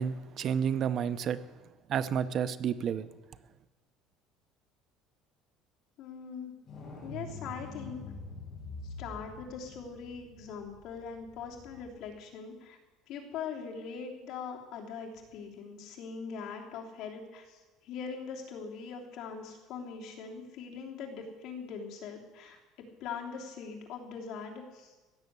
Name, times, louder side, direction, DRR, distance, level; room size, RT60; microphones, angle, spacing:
voice 1, 0.0-1.4 1.9-3.1, right 8 dB, 40° right, 13 dB, 0.7 m, -30 dB
voice 2, 6.0-6.5 7.0-8.0 8.8-12.8 13.1-22.6 23.0-24.9, left 6 dB, 55° left, 0 dB, 3.1 m, -41 dB
sound 1, 6.6-12.1 15.1-15.2, left 2 dB, 40° left, 5.9 m, -45 dB
16.5 x 7.2 x 9.5 m, 1.2 s
cardioid pair, 150°, 0 cm